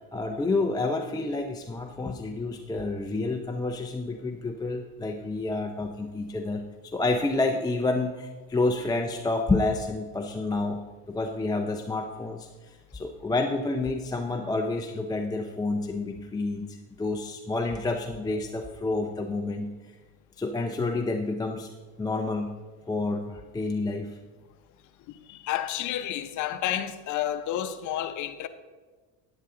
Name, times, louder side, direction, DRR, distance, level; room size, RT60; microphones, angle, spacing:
voice 1, 0.1-10.8 11.1-19.7 20.4-21.7 22.0-22.5 22.9-24.2, left 2 dB, 10° left, 0.6 m, -29 dB
voice 2, 25.3-28.5, left 11 dB, 55° left, 0.8 m, -30 dB
9.9 x 9.0 x 3.8 m
supercardioid pair, 100°, 36 cm